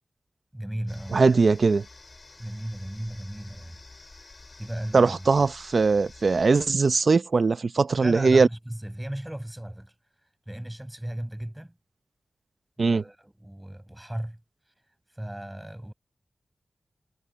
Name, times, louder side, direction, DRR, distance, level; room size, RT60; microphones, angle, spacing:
voice 1, 0.5-1.2 2.4-3.8 4.6-5.3 8.0-9.9 10.5-11.7 12.8-14.4 15.2-15.9, right 1 dB, 10° right, 7.3 m, -36 dB
sound 1, 0.9-6.7, left 2 dB, 40° left, 6.9 m, -49 dB
voice 2, 1.1-1.8 4.9-8.5 12.8-13.0, right 4 dB, 65° right, 0.7 m, -20 dB
wide cardioid pair, 70°, 0 cm